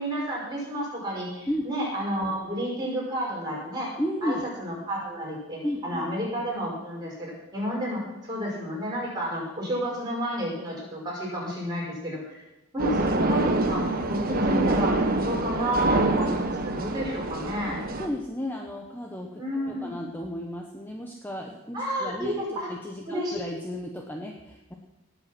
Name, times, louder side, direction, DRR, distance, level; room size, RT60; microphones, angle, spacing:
voice 1, 0.0-12.4 12.7-17.8 19.4-19.9 21.7-22.7 23.0-23.4, equal, 20° right, -5 dB, 5.9 m, -31 dB
voice 2, 4.0-4.4 5.6-6.0 17.7-24.8, equal, 10° left, 1 dB, 1.0 m, -34 dB
sound 1, 12.8-18.1, right 2 dB, 40° right, 1.2 m, -25 dB
19.0 x 8.1 x 6.1 m, 0.99 s
head